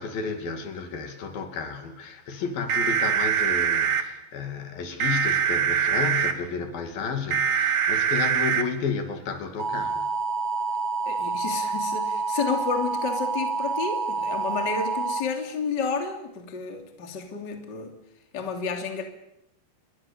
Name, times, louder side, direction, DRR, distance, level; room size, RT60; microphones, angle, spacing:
voice 1, 0.0-10.1, left 5 dB, 55° left, 3.9 m, -32 dB
sound 1, 2.7-4.0 5.0-6.3 7.3-8.6 9.6-15.2, right 6 dB, 50° right, 2.5 m, -25 dB
voice 2, 11.0-18.0 18.3-19.0, left 5 dB, 25° left, 2.9 m, -31 dB
29.5 x 22.0 x 7.2 m
omnidirectional pair, 5.2 m